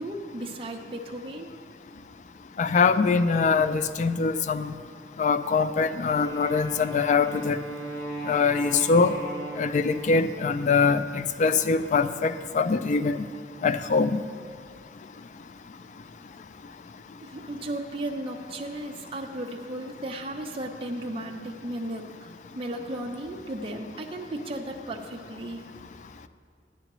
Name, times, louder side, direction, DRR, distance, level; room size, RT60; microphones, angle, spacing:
voice 1, 0.0-1.5 17.2-22.3 22.5-25.6, right 1 dB, 30° right, 1 dB, 0.6 m, -35 dB
voice 2, 2.6-4.7 5.2-7.6 8.3-9.2 9.6-13.2 13.6-14.2, left 4 dB, 45° left, 12 dB, 0.3 m, -23 dB
Wind instrument woodwind instrument, 6.0-10.4, right 1 dB, 25° left, 2.4 m, -37 dB
12.0 x 8.9 x 3.0 m, 2.1 s
head